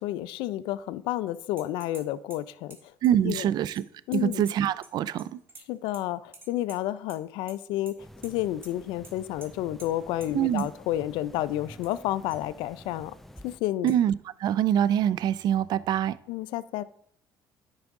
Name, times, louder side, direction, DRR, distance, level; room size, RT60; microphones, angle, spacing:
voice 1, 0.0-2.9 3.2-3.5 4.1-4.4 5.7-13.1 13.4-13.9 16.3-16.8, left 14 dB, 80° left, 0.3 m, -31 dB
sound 1, 1.6-2.0 2.3-4.9 5.2-6.0 6.3-7.2 7.5-7.9 8.2-8.3 8.6-8.7 9.0-9.1 9.4-9.5 9.8-9.9 10.2-10.3 10.6-10.7 11.6-12.0 12.3-12.4 12.9-13.0 13.9-14.0 15.4-15.5, right 2 dB, 30° right, 1.6 m, -49 dB
voice 2, 3.0-3.8 4.1-5.3 10.3-10.7 13.8-14.1 14.4-16.2, right 10 dB, 60° right, 0.3 m, -24 dB
Roomtone apartment neighbour's children running, 8.0-13.6, equal, 5° left, 0.5 m, -49 dB
9.8 x 4.8 x 3.6 m
supercardioid pair, 90°, 8 cm